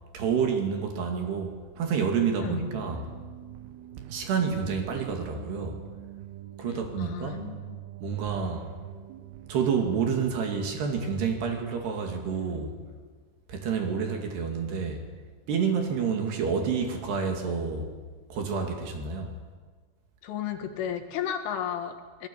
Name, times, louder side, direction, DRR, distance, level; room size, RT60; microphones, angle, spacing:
voice 1, 0.1-3.1 4.1-5.8 6.6-7.4 8.0-8.7 9.5-12.7 13.5-15.0 15.5-17.9 18.3-19.3, right 6 dB, 60° right, 3 dB, 4.1 m, -29 dB
sound 1, 2.7-9.9, right 13 dB, 75° right, 2.4 m, -44 dB
voice 2, 6.6-7.8 20.2-22.3, left 9 dB, 75° left, 7 dB, 4.1 m, -34 dB
25.0 x 19.5 x 8.8 m, 1.5 s
omnidirectional pair, 5.9 m